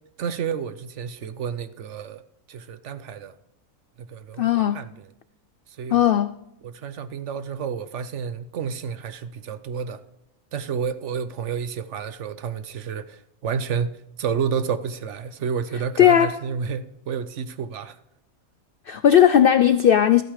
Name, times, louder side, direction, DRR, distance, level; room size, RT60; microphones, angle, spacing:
voice 1, 0.2-2.2 2.5-3.3 4.0-5.1 5.7-6.0 6.6-10.0 10.5-13.9 14.2-18.0, right 6 dB, 60° right, 0.9 m, -30 dB
voice 2, 4.4-4.8 5.9-6.3 16.0-16.4 18.9-20.2, left 10 dB, 85° left, 0.5 m, -17 dB
13.0 x 8.8 x 4.8 m
omnidirectional pair, 1.5 m